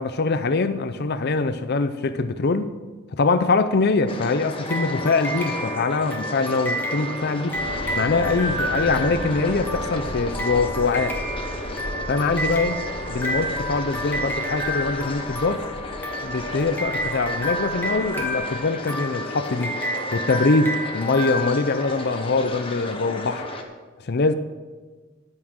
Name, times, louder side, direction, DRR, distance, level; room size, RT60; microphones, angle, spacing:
voice 1, 0.0-2.7 3.1-7.5 8.0-11.2 12.1-12.7 13.1-15.6 16.2-19.7 20.1-23.5 24.0-24.3, left 3 dB, 50° left, 0.6 m, -23 dB
sound 1, 4.1-23.6, left 2 dB, 25° left, 1.2 m, -34 dB
sound 2, 4.7-22.3, equal, 10° left, 1.5 m, -30 dB
sound 3, 7.5-18.5, equal, 80° right, 3.6 m, -37 dB
11.0 x 9.5 x 6.2 m
head